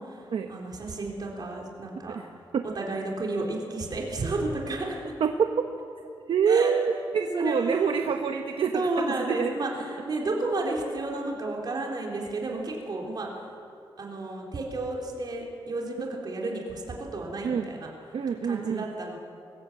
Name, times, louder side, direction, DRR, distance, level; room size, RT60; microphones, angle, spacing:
voice 1, 0.0-2.2 2.7-5.1 6.5-6.7 7.3-7.9 8.7-13.5 14.0-17.9 18.4-19.2, right 2 dB, 45° right, -1 dB, 3.6 m, -32 dB
voice 2, 5.2-5.7 6.0-9.5 17.4-17.7 18.1-18.9, right 6 dB, 70° right, 6 dB, 1.0 m, -26 dB
24.0 x 15.5 x 8.5 m, 2.6 s
wide cardioid pair, 145°, 10 cm